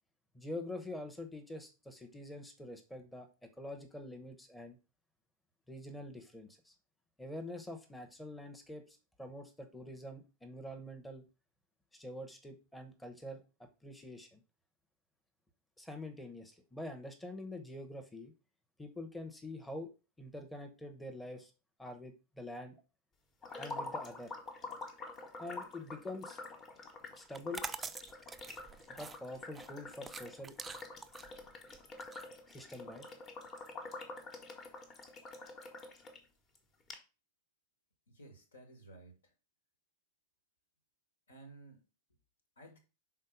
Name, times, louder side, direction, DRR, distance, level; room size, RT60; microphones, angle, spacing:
voice 1, 0.3-4.8 5.7-6.7 7.2-11.2 11.9-14.4 15.8-18.3 18.8-19.9 20.2-21.5 21.8-22.8 23.6-24.3 25.4-26.4 27.1-27.7 29.0-30.5 32.5-33.1, left 1 dB, 5° left, 4 dB, 0.9 m, -46 dB
sound 1, 23.4-36.2 36.5-36.6 36.9-37.0, left 3 dB, 30° left, 1.3 m, -47 dB
sound 2, 27.2-33.0, right 5 dB, 15° right, 0.4 m, -46 dB
voice 2, 38.1-39.3 41.3-41.8 42.6-42.8, right 2 dB, 70° left, 6 dB, 1.7 m, -55 dB
5.7 x 3.8 x 5.0 m, 0.31 s
figure-of-eight pair, 90°, 0 cm